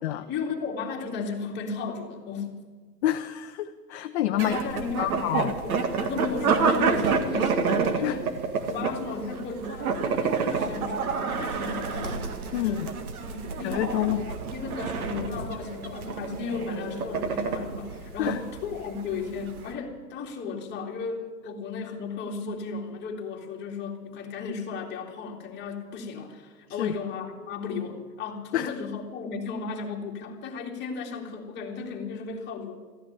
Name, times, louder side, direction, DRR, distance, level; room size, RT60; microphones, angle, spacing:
voice 1, 0.2-2.6 4.3-8.3 8.7-12.9 13.3-14.2 14.5-32.8, left 4 dB, 20° left, 0 dB, 2.4 m, -35 dB
voice 2, 3.0-4.5 5.0-5.5 8.0-8.2 12.5-12.9 13.6-14.2 18.2-18.4 26.8-26.9 28.5-28.7, left 13 dB, 45° left, 8 dB, 0.7 m, -27 dB
sound 1, 4.4-19.7, right 5 dB, 60° right, 2.0 m, -29 dB
14.5 x 10.0 x 9.5 m, 1.4 s
hypercardioid pair, 125°, 49 cm